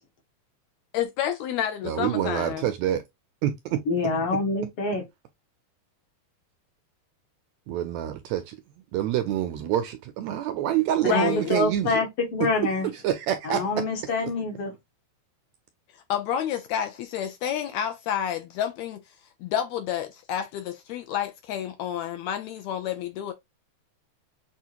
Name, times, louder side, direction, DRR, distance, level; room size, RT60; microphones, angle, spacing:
voice 1, 0.9-2.7 11.0-11.5 16.1-19.0 19.4-23.3, left 9 dB, 80° left, 1.7 m, -29 dB
voice 2, 1.8-3.0 3.4-3.8 7.7-8.6 8.9-12.0 12.9-13.6, right 11 dB, 80° right, 1.6 m, -26 dB
voice 3, 3.9-5.0 11.0-12.9 13.4-14.7, left 3 dB, 60° left, 1.7 m, -26 dB
6.4 x 2.4 x 2.8 m
omnidirectional pair, 3.5 m